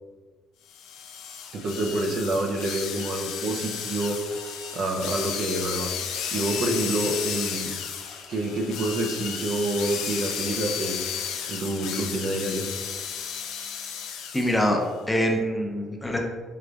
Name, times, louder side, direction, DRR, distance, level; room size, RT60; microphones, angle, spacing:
sound 1, 0.7-14.6, left 7 dB, 85° left, 0.4 m, -33 dB
voice 1, 1.5-4.2 4.7-5.9 6.3-7.8 8.3-11.0 11.5-12.6, right 2 dB, 60° right, 2 dB, 0.5 m, -27 dB
voice 2, 14.3-14.8 15.1-16.2, equal, 15° left, 1 dB, 0.5 m, -24 dB
4.7 x 2.5 x 2.3 m, 1.4 s
cardioid pair, 95°, 0 cm